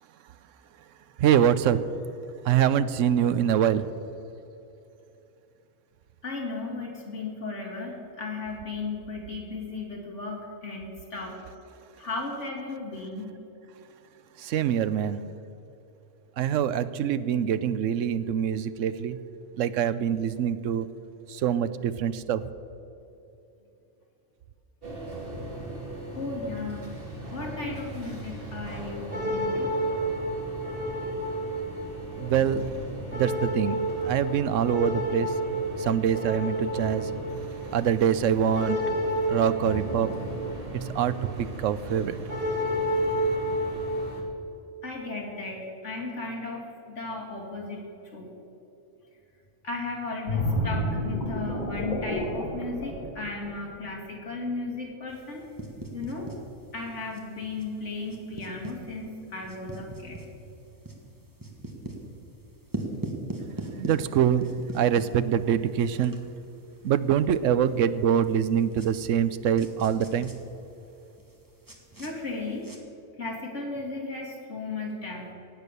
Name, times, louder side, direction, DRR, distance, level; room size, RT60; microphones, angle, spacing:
voice 1, 1.2-1.8 2.4-3.9 14.4-15.2 16.4-19.2 19.6-20.9 21.3-22.4 32.2-32.6 33.1-33.8 34.0-35.3 35.8-37.1 37.7-38.8 39.3-40.1 40.7-42.2 63.8-64.4 64.7-66.2 66.8-70.3, right 9 dB, 80° right, 14 dB, 1.0 m, -24 dB
voice 2, 6.2-11.3 12.0-13.3 19.8-19.9 26.2-26.9 27.3-29.8 44.8-47.8 48.1-48.3 49.6-55.4 55.9-56.3 56.7-60.3 72.0-72.7 73.2-75.3, left 3 dB, 65° left, -1 dB, 3.0 m, -35 dB
sound 1, 24.8-44.2, right 1 dB, 45° right, 2.4 m, -31 dB
sound 2, 50.3-53.8 54.3-54.5, left 1 dB, 35° left, 2.3 m, -30 dB
sound 3, 55.1-72.8, right 2 dB, 15° right, 1.6 m, -42 dB
18.0 x 8.2 x 6.8 m, 2.9 s
omnidirectional pair, 1.3 m